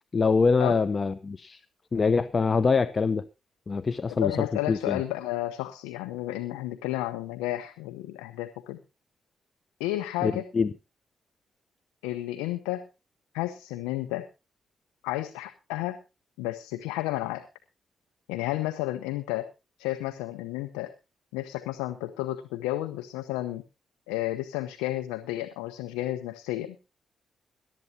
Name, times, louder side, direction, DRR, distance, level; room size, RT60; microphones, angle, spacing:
voice 1, 0.1-1.6 1.9-3.3 3.7-5.0 10.2-10.7, left 4 dB, 45° left, 0.7 m, -24 dB
voice 2, 4.1-8.8 9.8-10.4 12.0-12.9 13.3-14.3 15.0-16.0 16.4-17.5 18.3-19.5 19.8-20.9 21.3-23.6 24.1-26.8, left 16 dB, 90° left, 0.8 m, -32 dB
21.5 x 12.0 x 2.8 m
hypercardioid pair, 45°, 0 cm